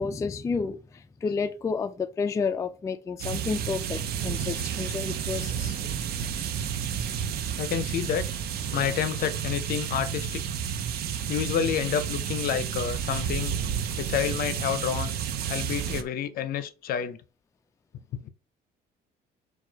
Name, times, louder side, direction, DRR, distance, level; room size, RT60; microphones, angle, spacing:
voice 1, 0.0-5.8, left 5 dB, 20° left, 0.3 m, -31 dB
sound 1, 3.2-16.0, right 8 dB, 65° right, 0.6 m, -31 dB
voice 2, 7.6-8.2 8.7-10.4 11.3-13.6 14.0-15.2 15.5-17.2 18.1-18.3, left 9 dB, 60° left, 0.6 m, -29 dB
4.6 x 2.3 x 4.6 m
cardioid pair, 110°, 17 cm